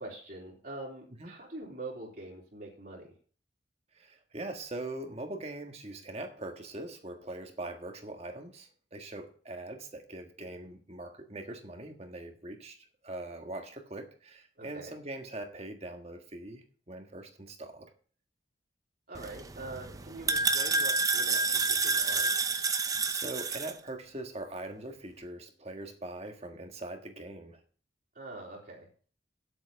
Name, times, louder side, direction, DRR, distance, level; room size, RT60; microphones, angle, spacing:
voice 1, 0.0-3.1 10.6-10.7 14.6-14.9 19.1-22.3 28.1-28.9, right 2 dB, 50° right, -2 dB, 3.3 m, -44 dB
voice 2, 3.9-17.9 22.8-27.6, right 2 dB, 35° right, 5 dB, 1.6 m, -42 dB
sound 1, 19.2-23.7, right 4 dB, 20° right, 0.6 m, -29 dB
9.3 x 8.1 x 5.6 m, 0.43 s
head